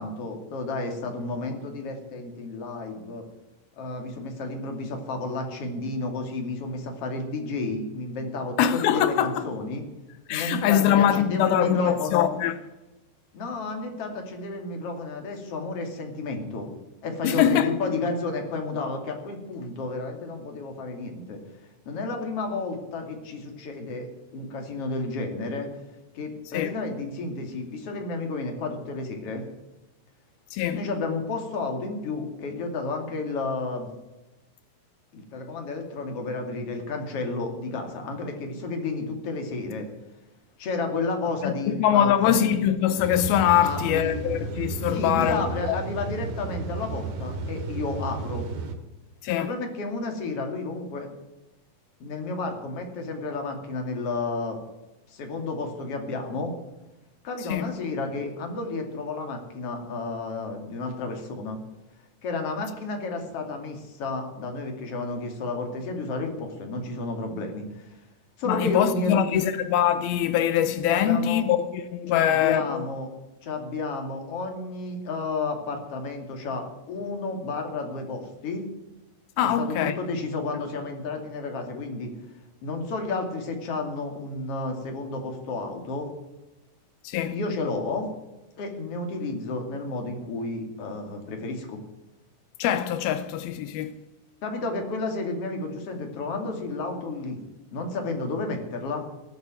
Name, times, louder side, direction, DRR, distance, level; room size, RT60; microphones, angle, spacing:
voice 1, 0.0-3.2 3.8-9.8 10.3-12.3 13.3-16.7 17.0-21.4 21.8-24.1 24.3-25.7 26.1-29.4 30.7-33.9 35.1-39.9 40.6-42.6 43.5-44.2 44.9-48.5 49.4-51.1 52.0-54.6 55.1-56.5 57.2-61.6 62.2-68.0 68.4-69.5 70.9-71.4 72.1-73.1 73.4-78.6 79.4-82.1 82.6-86.1 87.3-88.1 88.6-91.8 94.4-97.4 97.7-99.0, left 3 dB, 45° left, 3.1 m, -31 dB
voice 2, 8.6-9.5 10.3-12.6 17.2-17.7 26.5-26.7 30.5-30.8 41.4-45.8 49.2-49.5 57.5-57.7 68.5-72.9 79.4-80.0 87.0-87.4 92.6-93.9, left 10 dB, 85° left, 2.6 m, -23 dB
sound 1, 43.0-48.7, right 3 dB, 85° right, 3.8 m, -33 dB
19.0 x 7.4 x 7.7 m
omnidirectional pair, 4.3 m